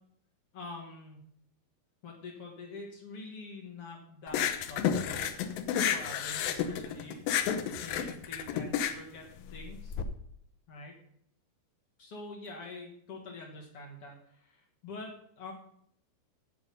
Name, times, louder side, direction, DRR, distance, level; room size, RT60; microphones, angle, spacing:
voice 1, 0.5-1.2 2.0-5.3 5.9-7.4 7.7-9.9 10.7-10.9 12.0-15.5, left 2 dB, 60° left, -1 dB, 1.5 m, -46 dB
sound 1, 4.3-10.0, left 9 dB, 75° left, 2.1 m, -31 dB
9.3 x 8.0 x 5.4 m, 0.67 s
omnidirectional pair, 4.9 m